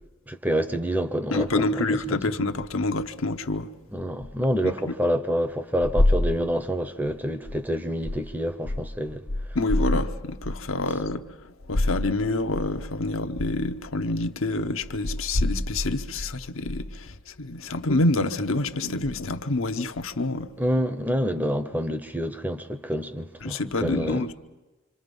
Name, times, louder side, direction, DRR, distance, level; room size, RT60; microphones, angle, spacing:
voice 1, 0.3-2.2 3.9-9.2 20.6-24.2, equal, 10° right, 0.7 m, -27 dB
voice 2, 1.3-3.7 4.6-4.7 9.5-20.5 23.4-24.3, left 2 dB, 70° left, 1.0 m, -26 dB
26.5 x 25.5 x 5.4 m
head